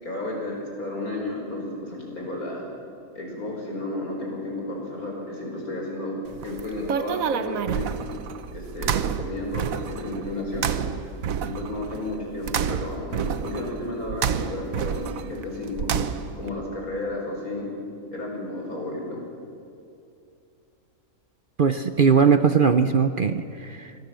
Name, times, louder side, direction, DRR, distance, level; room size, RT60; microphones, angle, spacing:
voice 1, 0.0-2.7 3.2-6.2 6.4-7.9 8.5-10.7 11.4-15.9 16.4-17.7 18.1-19.2, left 1 dB, 80° left, 0 dB, 5.5 m, -32 dB
sound 1, 6.3-16.5, right 8 dB, 70° right, 1.3 m, -29 dB
voice 2, 21.6-24.0, right 6 dB, 50° right, 10 dB, 0.7 m, -20 dB
25.0 x 17.5 x 7.6 m, 2.6 s
omnidirectional pair, 1.5 m